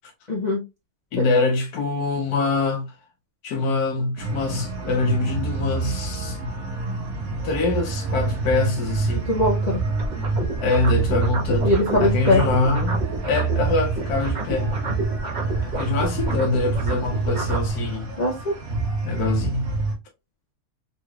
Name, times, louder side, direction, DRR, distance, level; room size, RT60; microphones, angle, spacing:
voice 1, 0.3-0.6 1.2-1.3 9.2-9.8 11.6-12.4 18.2-18.5, left 1 dB, 40° left, 0.6 m, -21 dB
voice 2, 1.1-2.8 3.4-6.4 7.4-9.3 10.6-11.7 12.0-14.8 15.6-18.1 19.0-19.7, left 3 dB, 80° left, 1.2 m, -24 dB
sound 1, 4.2-19.9, right 3 dB, 70° right, 1.3 m, -26 dB
sound 2, 10.0-13.7 13.9-17.7, right 2 dB, 35° right, 1.0 m, -31 dB
3.6 x 3.1 x 2.3 m
omnidirectional pair, 1.6 m